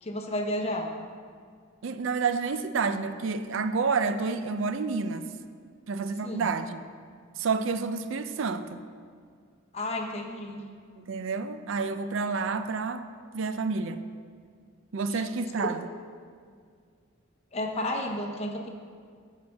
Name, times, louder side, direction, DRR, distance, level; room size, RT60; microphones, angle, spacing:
voice 1, 0.0-0.9 6.2-6.5 9.7-10.6 15.1-15.2 15.6-15.7 17.5-18.7, left 1 dB, 30° left, 1 dB, 0.8 m, -32 dB
voice 2, 1.8-5.3 5.9-6.8 7.4-8.8 11.0-13.1 13.3-14.0 14.9-15.9, right 4 dB, 65° right, 10 dB, 0.4 m, -29 dB
10.5 x 7.4 x 3.5 m, 2.1 s
head